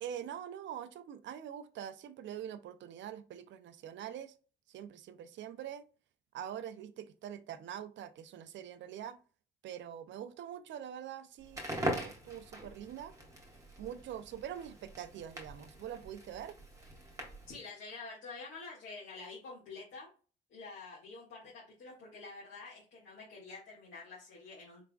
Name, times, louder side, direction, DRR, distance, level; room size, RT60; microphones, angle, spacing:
voice 1, 0.0-4.3 4.7-5.8 6.3-9.2 9.6-13.1 13.8-16.6, right 9 dB, 70° right, 0.5 m, -44 dB
Crackle, 11.4-17.6, right 1 dB, 15° right, 1.6 m, -42 dB
voice 2, 17.5-20.1 20.5-24.8, left 3 dB, 70° left, 1.9 m, -48 dB
4.8 x 3.4 x 2.3 m
cardioid pair, 90°, 20 cm